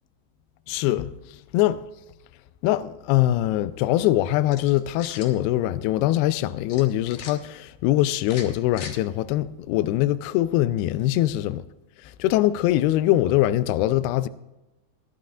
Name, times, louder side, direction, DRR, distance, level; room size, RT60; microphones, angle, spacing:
voice 1, 0.7-1.1 1.5-1.8 2.6-11.6 12.2-14.3, left 14 dB, 90° left, 2.2 m, -22 dB
sound 1, 4.4-5.4 6.7-7.3 8.2-8.9, left 7 dB, 65° left, 1.8 m, -40 dB
20.0 x 11.5 x 2.5 m
omnidirectional pair, 5.2 m